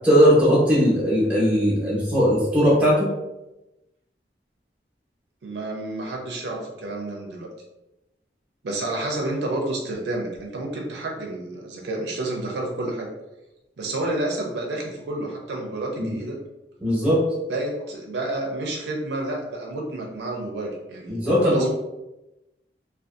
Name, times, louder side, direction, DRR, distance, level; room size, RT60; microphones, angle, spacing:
voice 1, 0.0-3.1 16.0-16.1 16.8-17.2 21.1-21.7, equal, 10° right, -7 dB, 0.8 m, -19 dB
voice 2, 5.4-7.5 8.6-13.1 13.8-16.4 17.5-21.7, right 2 dB, 75° right, 0 dB, 0.5 m, -30 dB
2.5 x 2.2 x 2.4 m, 0.97 s
head